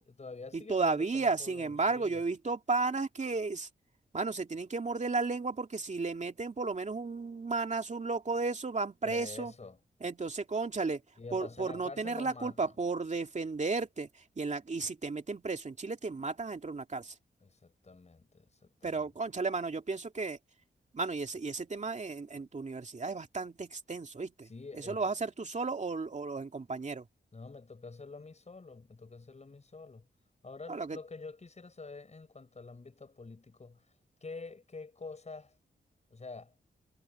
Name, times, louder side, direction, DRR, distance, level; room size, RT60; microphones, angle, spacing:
voice 1, 0.0-2.2 9.0-9.8 11.2-12.7 17.4-19.0 24.4-25.0 27.3-30.1 30.4-33.8 34.2-35.5 36.1-36.5, left 3 dB, 35° left, 6.8 m, -47 dB
voice 2, 0.5-3.7 4.1-9.5 10.0-11.0 11.3-17.1 18.8-20.4 20.9-24.5 24.8-27.1 30.7-31.0, right 3 dB, 40° right, 2.5 m, -34 dB
wide cardioid pair, 85°, 19 cm